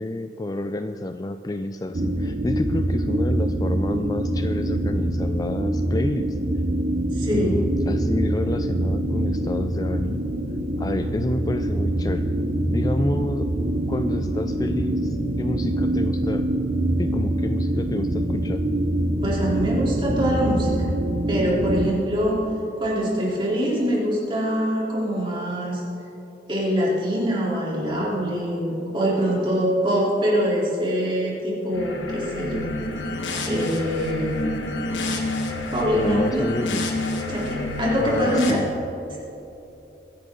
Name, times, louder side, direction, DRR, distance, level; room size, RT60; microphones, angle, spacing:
voice 1, 0.0-6.4 7.3-10.2 10.8-12.2 12.7-13.5 13.9-16.4 17.0-18.6 35.9-36.9 38.0-38.7, left 2 dB, 20° left, 8 dB, 0.3 m, -29 dB
sound 1, 1.9-21.9, right 1 dB, 45° right, 0.7 m, -24 dB
voice 2, 7.1-7.6 19.2-20.7 21.3-22.4 22.8-25.8 26.5-32.7 33.4-34.5 35.7-36.5 37.3-38.6 39.1-39.2, equal, 25° right, -5 dB, 3.5 m, -24 dB
sound 2, 31.7-38.5, left 2 dB, 90° left, 1.8 m, -28 dB
23.5 x 10.5 x 3.9 m, 3.0 s
head